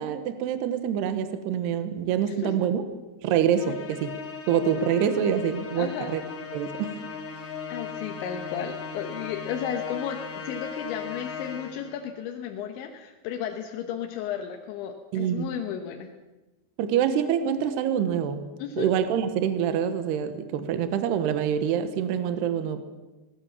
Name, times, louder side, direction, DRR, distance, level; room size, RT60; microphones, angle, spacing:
voice 1, 0.0-2.8 3.2-4.1 4.5-6.2 6.5-6.9 15.1-15.5 16.8-18.5 18.8-22.8, right 8 dB, 70° right, 9 dB, 3.1 m, -26 dB
Musical instrument, 3.5-12.0, left 6 dB, 50° left, 1.7 m, -37 dB
voice 2, 5.8-6.1 7.7-16.1 18.6-18.9, left 8 dB, 80° left, 4 dB, 3.5 m, -34 dB
21.5 x 19.0 x 7.3 m, 1.1 s
omnidirectional pair, 5.3 m